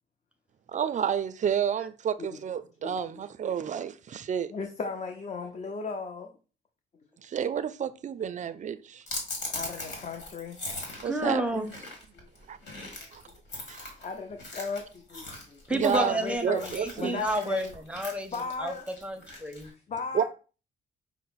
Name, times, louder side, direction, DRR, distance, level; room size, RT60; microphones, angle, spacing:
voice 1, 0.7-4.5 7.2-9.0 11.0-11.8 12.5-12.6 13.1-13.2 13.7-13.9 15.7-16.1 16.4-17.2 20.1-20.2, right 8 dB, 40° right, 0.4 m, -30 dB
voice 2, 4.5-6.3 9.5-10.6 12.1-12.3 14.0-15.6 15.9-17.7 18.3-18.9 19.9-20.2, left 4 dB, 35° left, 0.6 m, -36 dB
sound 1, 9.1-19.7, left 2 dB, 60° left, 1.7 m, -40 dB
voice 3, 11.0-11.7 15.7-18.3 18.6-18.7 19.0-19.7, right 1 dB, 5° right, 0.7 m, -30 dB
5.4 x 2.0 x 3.9 m
cardioid pair, 90°, 20 cm